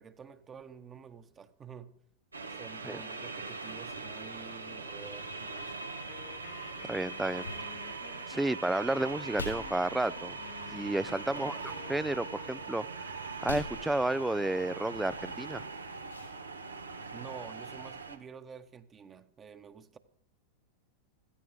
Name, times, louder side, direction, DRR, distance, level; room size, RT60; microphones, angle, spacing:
voice 1, 0.0-1.9 2.5-5.9 11.3-11.7 17.1-20.0, right 6 dB, 25° right, 8 dB, 1.3 m, -49 dB
sound 1, 2.3-18.2, right 4 dB, 90° right, 1.7 m, -41 dB
Wind instrument woodwind instrument, 6.1-12.7, left 12 dB, 55° left, 1.3 m, -52 dB
sound 2, 6.3-16.3, left 2 dB, 85° left, 5.9 m, -48 dB
voice 2, 6.9-7.5 8.3-10.4 10.7-11.5 11.9-12.9 13.4-15.6, right 2 dB, 5° right, 19 dB, 0.5 m, -31 dB
16.0 x 15.0 x 5.1 m, 0.64 s
figure-of-eight pair, 90°, 0 cm